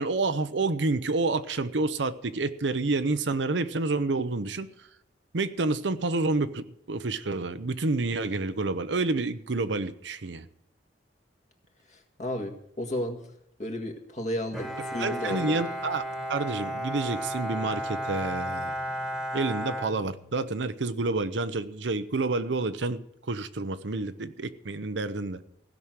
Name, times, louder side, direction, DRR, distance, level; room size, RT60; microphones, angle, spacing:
voice 1, 0.0-4.9 5.3-10.5 15.0-16.0 16.3-18.8 19.3-25.5, right 3 dB, 80° right, 0.8 m, -29 dB
voice 2, 11.9-13.2 13.6-15.6, left 1 dB, 40° left, 1.8 m, -33 dB
Bowed string instrument, 14.5-20.7, equal, ahead, 1.6 m, -34 dB
16.0 x 6.2 x 8.9 m
head